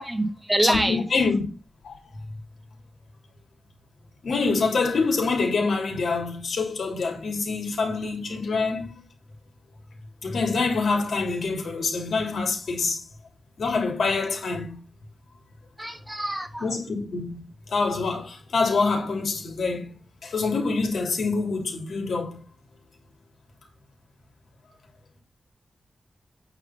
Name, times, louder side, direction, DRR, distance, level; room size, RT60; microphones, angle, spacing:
voice 1, 0.1-1.0 15.8-16.7, right 1 dB, 10° right, 1.5 m, -25 dB
voice 2, 0.6-1.4 1.8-2.0 4.2-9.0 10.2-13.0 13.6-14.8 16.6-17.4 17.7-19.9 20.2-22.4, left 4 dB, 90° left, 3.5 m, -26 dB
9.1 x 5.2 x 5.9 m
wide cardioid pair, 135°, 0 cm